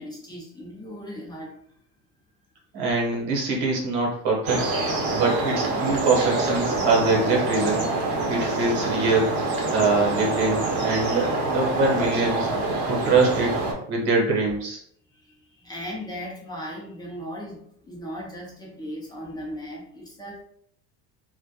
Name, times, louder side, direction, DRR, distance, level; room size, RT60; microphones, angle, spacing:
voice 1, 0.0-1.8 15.1-20.4, equal, 15° left, -3 dB, 0.4 m, -37 dB
voice 2, 2.7-4.6 5.1-7.8 8.3-9.3 9.7-12.5 12.9-13.6 13.9-14.8, right 3 dB, 75° right, -1 dB, 1.0 m, -23 dB
sound 1, 4.5-13.7, right 2 dB, 45° right, 0.6 m, -26 dB
2.1 x 2.1 x 2.7 m, 0.67 s
cardioid pair, 145°, 33 cm